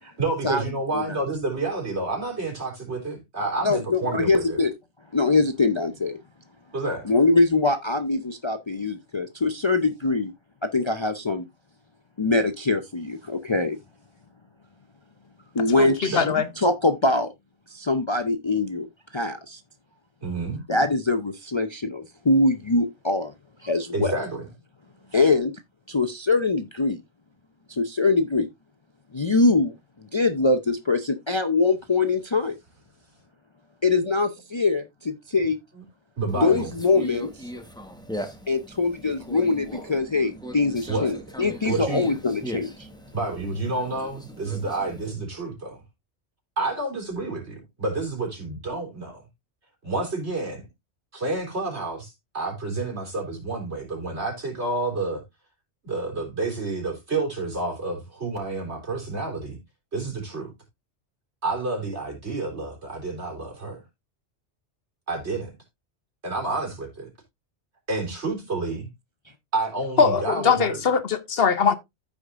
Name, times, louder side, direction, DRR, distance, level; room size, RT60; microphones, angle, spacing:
voice 1, 0.0-4.6 6.7-7.1 16.1-16.3 20.2-20.6 23.9-24.5 36.2-36.7 40.9-41.1 41.7-42.2 43.1-45.8 46.6-49.2 49.8-50.6 51.1-55.2 55.8-59.6 59.9-60.5 61.4-63.8 65.1-65.5 66.2-67.1 67.9-68.9 69.5-70.8, right 3 dB, 70° right, 3.9 m, -29 dB
voice 2, 3.6-4.7 5.1-6.2 7.0-10.3 10.6-11.4 12.2-13.8 15.5-17.3 17.7-18.9 19.1-19.6 20.7-23.3 23.6-24.2 25.1-25.5 25.9-27.0 27.7-28.5 29.1-29.7 30.1-32.6 33.8-35.6 36.4-37.5 38.5-42.9, left 3 dB, 30° left, 0.6 m, -23 dB
voice 3, 15.8-16.5 70.0-71.8, left 6 dB, 60° left, 1.0 m, -21 dB
Conversation, 36.3-45.1, equal, 5° left, 1.1 m, -39 dB
14.5 x 4.9 x 2.5 m
omnidirectional pair, 1.2 m